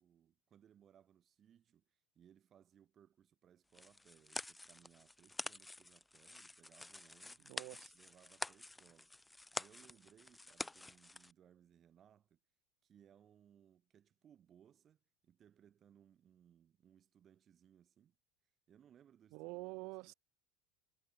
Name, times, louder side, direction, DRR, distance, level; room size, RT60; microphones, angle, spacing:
voice 1, 0.0-7.5 7.9-12.4 12.8-18.1 18.7-20.1, right 9 dB, 25° right, 1.4 m, -67 dB
sound 1, 3.7-11.3, left 2 dB, 5° left, 0.4 m, -48 dB
voice 2, 7.4-7.9 19.3-20.1, right 27 dB, 55° right, 1.1 m, -47 dB
supercardioid pair, 155°, 0 cm